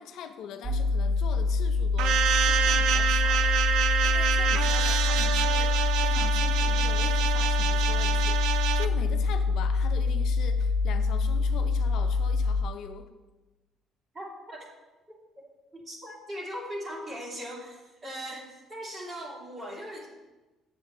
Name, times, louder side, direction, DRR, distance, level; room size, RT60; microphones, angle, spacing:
voice 1, 0.0-13.1, left 7 dB, 70° left, 7 dB, 0.6 m, -42 dB
sound 1, 0.6-12.6, left 4 dB, 15° right, 0.6 m, -25 dB
sound 2, 2.0-8.9, right 9 dB, 80° right, 0.4 m, -27 dB
voice 2, 14.1-14.7 15.4-20.1, equal, 35° right, -3 dB, 2.7 m, -39 dB
7.6 x 7.5 x 3.0 m, 1.1 s
cardioid pair, 100°, 0 cm